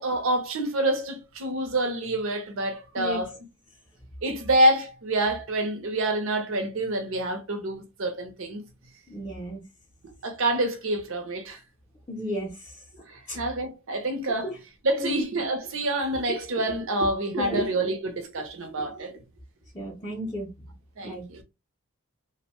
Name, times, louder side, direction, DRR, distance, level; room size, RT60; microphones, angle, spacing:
voice 1, 0.0-3.4 4.2-8.6 10.2-11.6 13.0-14.5 14.8-19.2 21.0-21.4, right 1 dB, 65° right, 0.6 m, -27 dB
voice 2, 9.1-9.6 12.1-12.8 13.3-13.4 14.4-14.5 15.0-15.3 17.4-17.6 19.7-20.5 21.0-21.2, left 1 dB, 15° left, 0.5 m, -33 dB
2.5 x 2.1 x 2.9 m
head